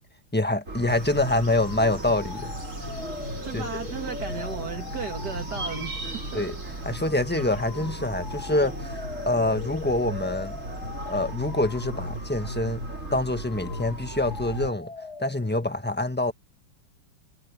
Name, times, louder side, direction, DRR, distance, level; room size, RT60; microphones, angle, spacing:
voice 1, 0.3-2.6 3.5-3.6 6.3-6.5 6.8-8.9 9.2-10.6 11.0-12.8 13.1-14.9 15.2-16.3, left 2 dB, 5° left, 1.0 m, -25 dB
sound 1, 0.7-14.7, right 1 dB, 35° right, 3.6 m, -36 dB
sound 2, 0.9-13.0, right 2 dB, 85° right, 7.6 m, -43 dB
sound 3, 1.1-15.7, left 5 dB, 50° left, 2.6 m, -42 dB
voice 2, 3.4-6.4, right 5 dB, 50° right, 2.3 m, -35 dB
omnidirectional pair, 2.3 m